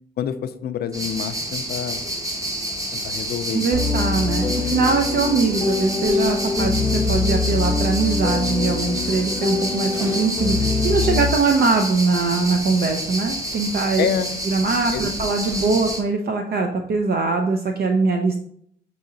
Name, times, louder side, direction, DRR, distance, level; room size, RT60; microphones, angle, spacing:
voice 1, 0.2-2.0 2.9-3.7 14.0-14.3 14.9-15.0, left 8 dB, 55° left, 11 dB, 0.4 m, -27 dB
sound 1, 0.9-16.0, right 1 dB, 15° right, 0.9 m, -29 dB
voice 2, 3.5-14.1 14.5-18.4, right 4 dB, 50° right, 4 dB, 0.5 m, -22 dB
sound 2, 3.7-11.3, left 4 dB, 20° left, 0.7 m, -24 dB
6.2 x 2.8 x 2.7 m, 0.67 s
cardioid pair, 90°, 20 cm